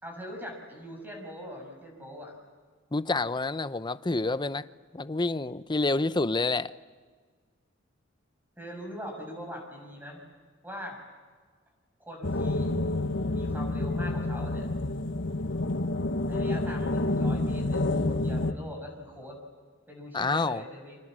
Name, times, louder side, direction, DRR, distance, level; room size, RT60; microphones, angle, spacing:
voice 1, 0.0-2.3 8.6-10.2 10.6-11.1 12.0-12.8 13.3-14.7 16.3-19.4 19.9-21.0, equal, 10° right, 6.2 m, -42 dB
voice 2, 2.9-4.6 4.9-6.7 20.1-20.6, left 3 dB, 20° left, 0.7 m, -28 dB
sound 1, 12.2-18.5, left 2 dB, 65° left, 1.4 m, -28 dB
29.5 x 26.0 x 7.5 m
head